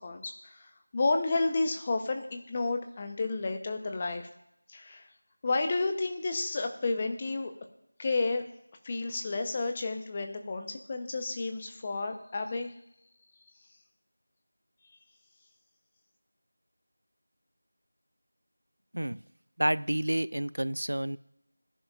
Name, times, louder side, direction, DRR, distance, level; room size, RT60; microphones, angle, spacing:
voice 1, 0.0-4.3 4.7-5.1 5.4-7.5 8.0-8.5 8.8-12.7, left 3 dB, 20° left, 6 dB, 0.8 m, -31 dB
voice 2, 19.6-21.2, right 1 dB, 85° right, 17 dB, 0.4 m, -29 dB
22.0 x 11.0 x 2.5 m, 0.83 s
figure-of-eight pair, 175°, 0 cm